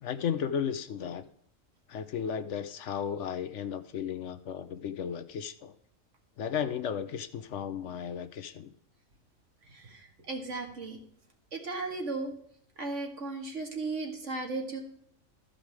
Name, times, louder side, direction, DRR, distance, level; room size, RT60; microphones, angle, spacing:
voice 1, 0.0-1.2 1.9-5.7 6.4-8.7, left 8 dB, 65° left, 12 dB, 1.0 m, -34 dB
voice 2, 9.7-10.0 10.3-11.0 11.5-12.3 12.8-14.8, right 3 dB, 65° right, 2 dB, 2.1 m, -35 dB
13.5 x 5.2 x 4.7 m, 0.66 s
omnidirectional pair, 1.4 m